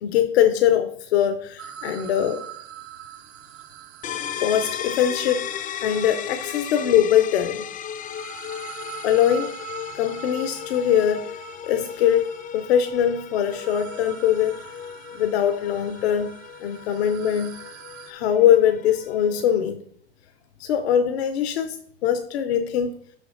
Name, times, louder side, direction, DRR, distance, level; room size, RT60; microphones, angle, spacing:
voice 1, 0.0-2.4 4.4-5.4 5.8-7.6 9.0-9.5 9.9-11.3 11.6-14.6 15.1-16.3 16.6-17.5 18.1-19.8 20.6-21.8 22.0-23.0, left 10 dB, 80° left, 9 dB, 0.7 m, -22 dB
sound 1, 1.6-6.8 7.6-18.1, right 11 dB, 50° right, 0.9 m, -43 dB
sound 2, 4.0-19.6, left 10 dB, 25° left, 0.5 m, -36 dB
6.6 x 5.3 x 4.2 m, 0.63 s
hypercardioid pair, 95°, 31 cm